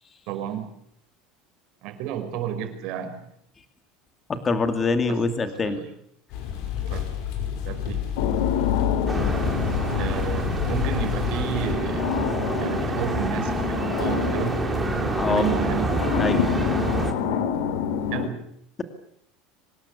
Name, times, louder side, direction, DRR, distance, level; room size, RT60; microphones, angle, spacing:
voice 1, 0.3-0.7 1.8-3.3 5.1-5.9 6.9-7.1 7.6-8.0 10.0-12.1 12.6-14.6 15.3-15.9 18.1-18.4, right 9 dB, 50° right, 6 dB, 5.7 m, -31 dB
voice 2, 4.3-5.8 15.0-15.4 16.2-16.5, left 4 dB, 15° left, 7 dB, 2.4 m, -24 dB
sound 1, 6.3-11.7, left 9 dB, 55° left, 6.1 m, -28 dB
sound 2, 8.2-18.3, left 7 dB, 80° left, 3.0 m, -28 dB
sound 3, 9.1-17.1, right 3 dB, 10° right, 3.2 m, -28 dB
25.0 x 20.0 x 8.5 m, 0.71 s
cardioid pair, 165°, 0 cm